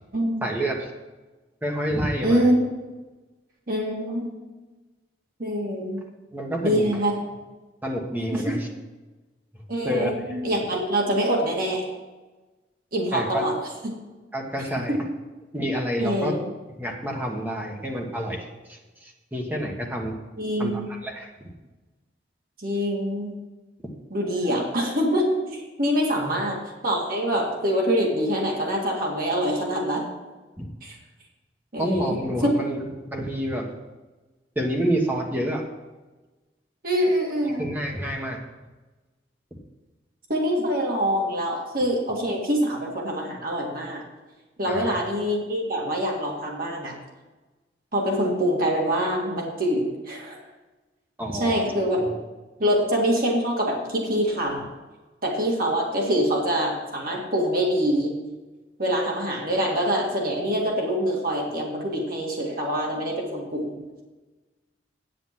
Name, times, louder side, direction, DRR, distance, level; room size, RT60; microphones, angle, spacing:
voice 1, 0.4-0.9 1.6-2.4 6.3-6.9 7.8-8.7 9.5-10.2 10.5-10.6 13.1-13.4 14.3-15.0 15.5-16.3 16.8-20.1 20.6-21.5 26.2-26.3 30.6-30.7 31.8-32.8 33.0-33.7 34.5-35.6 37.6-38.4 39.5-39.6 44.7-45.0 51.2-51.7, equal, 10° right, 0 dB, 1.3 m, -28 dB
voice 2, 2.2-2.6 3.7-4.3 5.4-6.0 6.6-7.1 8.3-8.6 9.7-11.9 12.9-13.6 14.8-15.0 16.0-16.4 20.4-20.9 22.6-23.3 24.1-30.1 30.8-30.9 31.7-32.6 36.8-37.7 40.3-44.0 44.6-47.0 47.9-50.3 51.4-52.1 52.6-54.7 55.2-58.2 58.8-63.8, equal, 55° right, -1 dB, 2.0 m, -25 dB
9.1 x 7.7 x 5.9 m, 1.2 s
head